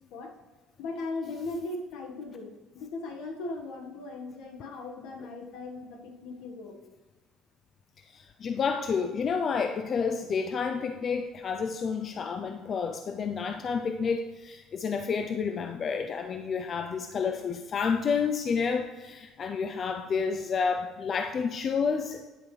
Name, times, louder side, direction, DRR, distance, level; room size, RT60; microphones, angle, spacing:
voice 1, 0.8-2.5 2.7-6.8, left 3 dB, 65° left, 1 dB, 1.4 m, -38 dB
voice 2, 8.1-22.2, left 5 dB, 30° left, 6 dB, 0.3 m, -30 dB
9.7 x 8.1 x 3.2 m, 1.2 s
cardioid pair, 180°, 0 cm